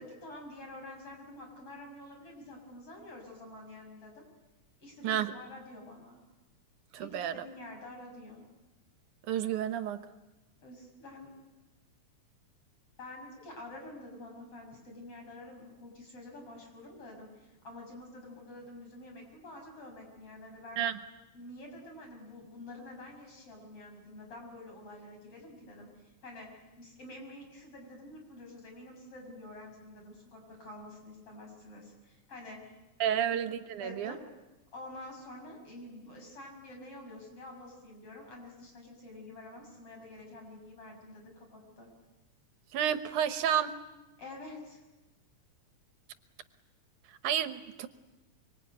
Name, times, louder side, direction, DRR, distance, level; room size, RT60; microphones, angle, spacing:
voice 1, 0.0-4.3 4.8-6.2 7.0-8.5 10.6-11.3 13.0-20.8 21.3-32.7 33.1-33.3 33.8-34.3 34.7-41.9 44.2-44.8, left 1 dB, 50° left, 2 dB, 7.4 m, -48 dB
voice 2, 6.9-7.4 9.3-10.1 20.8-21.0 33.0-34.2 42.7-43.8 47.2-47.9, right 9 dB, 85° right, 11 dB, 2.6 m, -31 dB
25.0 x 24.5 x 9.4 m, 1.1 s
omnidirectional pair, 3.5 m